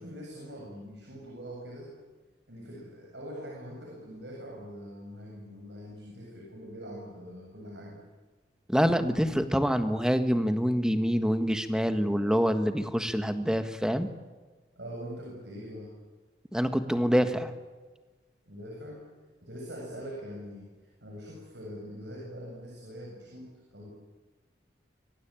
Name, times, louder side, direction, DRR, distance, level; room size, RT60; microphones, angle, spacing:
voice 1, 0.0-1.9 2.5-8.0 14.8-16.0 18.5-19.0 19.4-20.7 21.0-23.9, equal, 80° right, -1 dB, 7.4 m, -43 dB
voice 2, 8.7-14.1 16.5-17.5, equal, 5° right, 8 dB, 1.5 m, -26 dB
25.5 x 24.0 x 9.1 m, 1.3 s
head